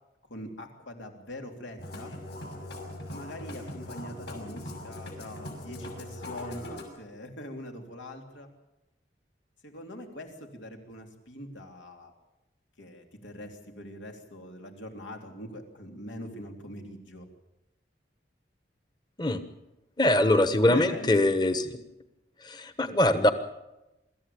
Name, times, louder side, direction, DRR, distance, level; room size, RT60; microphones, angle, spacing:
voice 1, 0.3-2.1 3.1-8.5 9.6-12.1 12.8-17.3 20.6-21.3, equal, 85° left, 3 dB, 3.3 m, -42 dB
Musical instrument, 1.8-6.8, left 1 dB, 65° left, 6.3 m, -41 dB
voice 2, 20.0-21.7 22.4-23.3, left 1 dB, 25° left, 10 dB, 1.2 m, -23 dB
24.5 x 14.0 x 8.7 m, 0.97 s
head